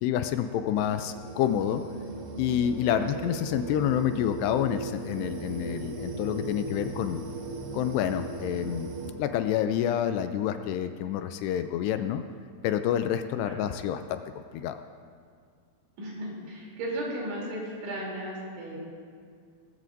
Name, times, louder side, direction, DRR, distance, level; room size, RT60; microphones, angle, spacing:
voice 1, 0.0-1.8 2.4-7.2 7.7-8.9 9.2-12.2 12.6-14.2 14.5-14.8, left 10 dB, 85° left, 9 dB, 2.5 m, -28 dB
sound 1, 0.8-9.1, right 2 dB, 65° right, 2.6 m, -37 dB
voice 2, 16.0-18.8, right 1 dB, 90° right, -4 dB, 5.5 m, -35 dB
19.5 x 15.0 x 2.6 m, 2.1 s
omnidirectional pair, 5.1 m